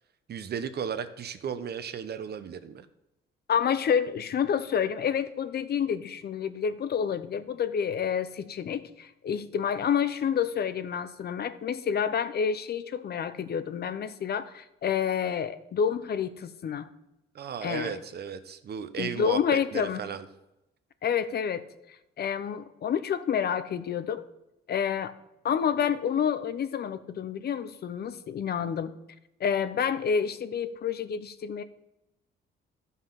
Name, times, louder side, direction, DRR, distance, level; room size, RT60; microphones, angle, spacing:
voice 1, 0.3-2.9 17.3-20.3, right 7 dB, 55° right, 11 dB, 0.9 m, -35 dB
voice 2, 3.5-16.9 17.6-17.9 19.0-20.1 21.0-21.6 22.2-24.3 24.7-25.1 25.4-28.9 29.4-31.6, left 7 dB, 55° left, 13 dB, 0.7 m, -29 dB
11.5 x 5.6 x 5.7 m, 0.89 s
cardioid pair, 90°, 20 cm